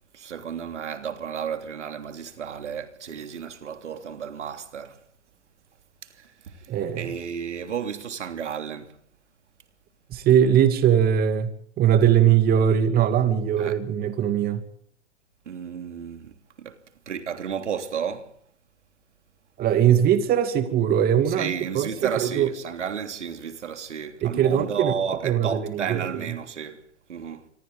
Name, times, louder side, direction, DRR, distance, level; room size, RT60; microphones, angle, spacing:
voice 1, 0.1-5.0 6.0-9.0 13.6-13.8 15.4-18.4 21.3-27.5, right 7 dB, 75° right, 3.2 m, -33 dB
voice 2, 6.7-7.1 10.1-14.6 19.6-21.9 22.2-22.5 24.2-24.9 25.2-26.0, right 9 dB, 25° right, 2.6 m, -21 dB
26.5 x 25.5 x 3.9 m
hypercardioid pair, 120°, 36 cm